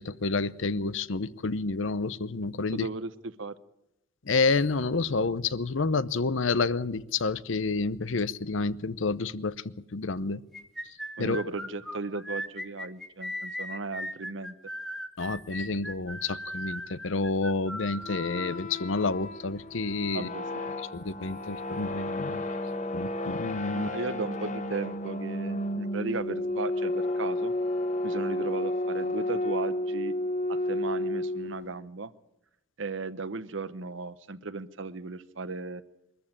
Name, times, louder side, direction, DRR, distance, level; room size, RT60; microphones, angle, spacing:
voice 1, 0.0-2.9 4.3-10.4 11.2-11.4 15.2-20.3 20.9-22.5 22.9-23.9, left 3 dB, 65° left, 17 dB, 0.7 m, -29 dB
voice 2, 2.7-3.6 11.2-14.5 20.1-20.7 23.7-27.5 28.0-30.1 30.5-32.1 32.8-35.8, right 3 dB, 65° right, 15 dB, 0.9 m, -36 dB
sound 1, 10.5-18.6, equal, ahead, 1.4 m, -38 dB
sound 2, 18.0-31.8, left 1 dB, 35° left, 1.1 m, -32 dB
22.5 x 14.0 x 8.7 m, 0.87 s
head